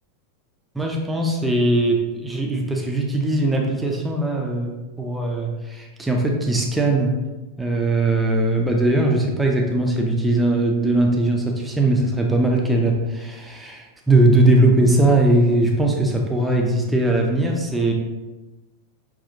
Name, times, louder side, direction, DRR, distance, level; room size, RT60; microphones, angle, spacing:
voice 1, 0.7-7.1 7.6-17.9, right 2 dB, 5° right, 0 dB, 0.5 m, -20 dB
5.6 x 2.4 x 2.7 m, 1.1 s
figure-of-eight pair, 90°, 0 cm